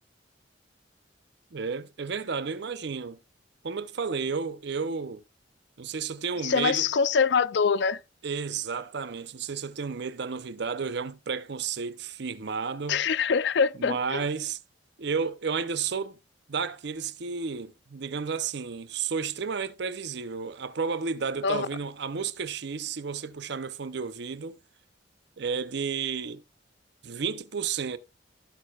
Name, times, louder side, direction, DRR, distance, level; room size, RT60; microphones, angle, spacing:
voice 1, 1.5-3.2 3.6-5.2 5.8-6.9 8.2-13.0 13.8-14.6 15.0-16.2 16.5-24.6 25.4-26.4 27.0-28.0, right 5 dB, 65° right, 0.7 m, -32 dB
voice 2, 6.4-8.0 12.9-14.2 21.4-21.7, left 6 dB, 65° left, 0.5 m, -24 dB
15.5 x 6.5 x 2.4 m
head